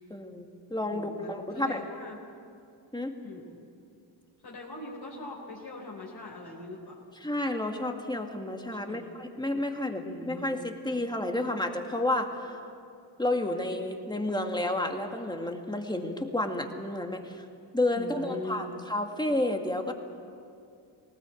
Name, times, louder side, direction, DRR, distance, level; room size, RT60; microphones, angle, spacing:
voice 1, 0.1-1.8 2.9-3.1 7.2-12.6 13.2-17.4 17.7-19.9, left 1 dB, 10° left, 4 dB, 2.1 m, -31 dB
voice 2, 0.9-2.2 3.2-3.6 4.4-7.0 8.8-9.0 10.0-10.6 17.9-18.7, left 2 dB, 60° left, -4 dB, 3.9 m, -41 dB
19.5 x 19.0 x 8.5 m, 2.4 s
cardioid pair, 85°, 44 cm